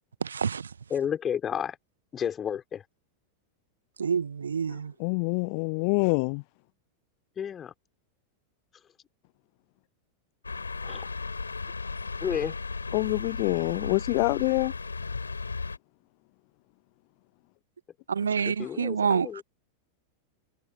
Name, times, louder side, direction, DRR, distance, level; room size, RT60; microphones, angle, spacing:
voice 1, 0.2-0.7 4.0-4.9 18.1-19.4, right 6 dB, 70° right, 1.2 m, -27 dB
voice 2, 0.9-1.8 2.1-2.8 7.4-7.7 10.8-11.1 12.2-12.5 18.6-19.4, left 8 dB, 25° left, 4.8 m, -31 dB
voice 3, 5.0-6.4 12.9-14.7, left 36 dB, 45° left, 0.4 m, -26 dB
sound 1, 10.4-15.8, left 4 dB, 80° left, 3.5 m, -35 dB
figure-of-eight pair, 90°, 0 cm